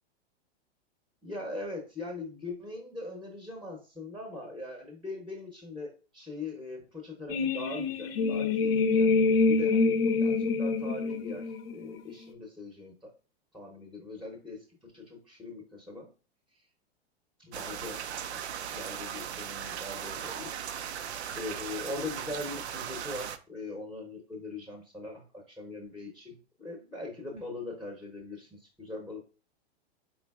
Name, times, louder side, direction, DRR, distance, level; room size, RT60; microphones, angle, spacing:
voice 1, 1.2-13.1 13.5-16.1 17.4-18.4 18.7-20.6 20.9-29.2, left 2 dB, ahead, 2 dB, 0.8 m, -41 dB
sound 1, 7.3-12.1, left 4 dB, 65° left, 0.7 m, -26 dB
sound 2, 17.5-23.4, right 9 dB, 85° right, 0.5 m, -38 dB
4.5 x 3.8 x 2.3 m, 0.35 s
hypercardioid pair, 120°, 32 cm